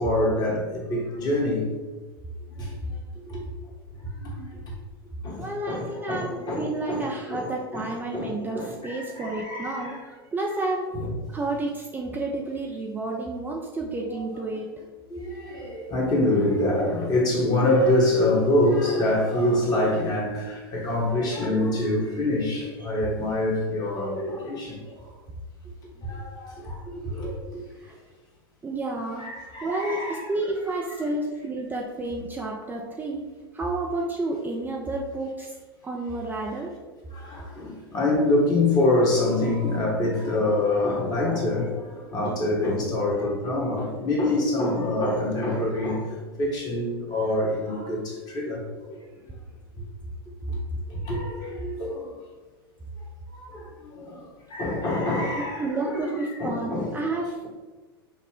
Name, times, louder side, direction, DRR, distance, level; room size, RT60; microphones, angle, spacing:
voice 1, 0.0-1.7 2.6-2.8 3.3-3.4 4.0-4.6 5.2-7.8 8.1-10.1 10.9-11.1 14.1-14.4 15.1-25.0 26.0-27.6 29.2-30.3 37.1-49.0 49.8-49.9 50.5-50.6 50.9-52.1 53.3-56.9, left 1 dB, 30° left, 1.3 m, -26 dB
voice 2, 5.4-10.0 10.3-10.9 11.3-14.7 27.8-27.9 28.6-29.3 29.6-33.3 33.5-35.5 35.8-36.7 55.6-57.2, right 2 dB, 15° right, 0.5 m, -30 dB
5.6 x 2.1 x 3.6 m
figure-of-eight pair, 90°, 13 cm